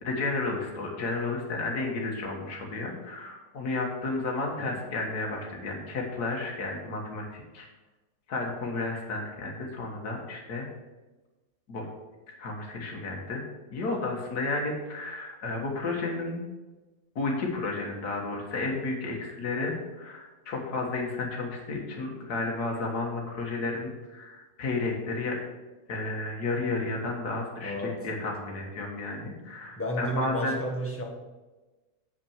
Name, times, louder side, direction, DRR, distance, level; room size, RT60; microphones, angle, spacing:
voice 1, 0.0-7.7 8.3-10.7 11.7-11.9 12.4-13.4 13.7-16.4 17.2-25.4 25.9-30.6, left 3 dB, 85° left, -1 dB, 2.0 m, -32 dB
voice 2, 27.6-28.1 29.8-31.0, equal, 10° left, -1 dB, 1.6 m, -32 dB
7.9 x 5.5 x 7.2 m, 1.2 s
omnidirectional pair, 1.6 m